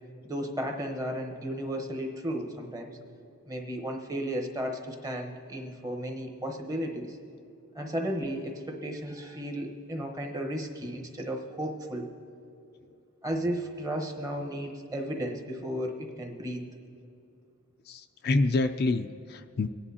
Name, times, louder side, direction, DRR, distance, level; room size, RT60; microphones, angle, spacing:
voice 1, 0.2-3.0 3.5-7.2 7.7-12.1 13.2-16.6, equal, 15° right, 3 dB, 1.0 m, -34 dB
voice 2, 17.9-19.7, left 2 dB, 45° left, 7 dB, 0.3 m, -27 dB
24.5 x 9.9 x 2.8 m, 2.6 s
head